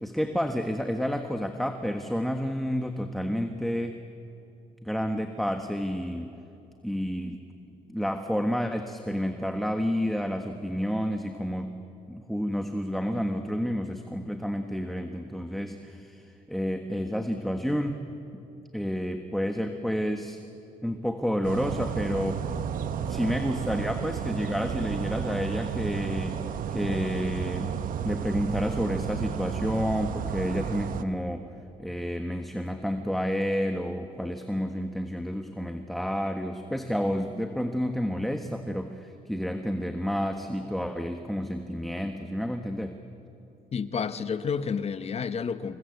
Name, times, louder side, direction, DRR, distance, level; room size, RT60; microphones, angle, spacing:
voice 1, 0.0-4.0 4.8-6.3 6.8-7.4 7.9-11.7 12.1-18.0 18.3-18.4 18.7-20.4 20.8-22.5 23.0-26.4 26.7-31.4 31.8-43.0, equal, ahead, 1.5 m, -30 dB
sound 1, 21.4-31.0, right 8 dB, 75° right, 1.2 m, -32 dB
voice 2, 43.7-45.8, left 6 dB, 45° left, 1.2 m, -30 dB
27.5 x 22.0 x 8.2 m
cardioid pair, 95°, 14 cm